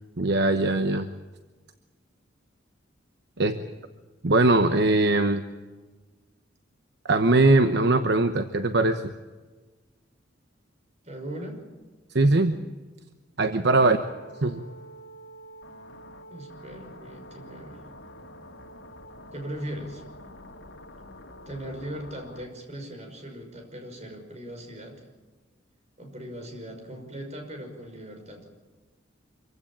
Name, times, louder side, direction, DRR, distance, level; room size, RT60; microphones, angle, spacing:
voice 1, 0.2-1.1 3.4-3.6 4.2-5.4 7.1-9.0 12.1-12.6 13.4-14.0 14.4-14.6, right 2 dB, 60° right, 8 dB, 1.0 m, -21 dB
voice 2, 11.0-11.6 13.8-14.0 16.3-17.8 19.3-20.0 21.5-25.1 26.0-28.5, right 1 dB, 35° right, 3 dB, 5.9 m, -39 dB
sound 1, 13.9-22.5, equal, 80° left, 2.5 m, -46 dB
25.5 x 16.0 x 8.9 m, 1.3 s
head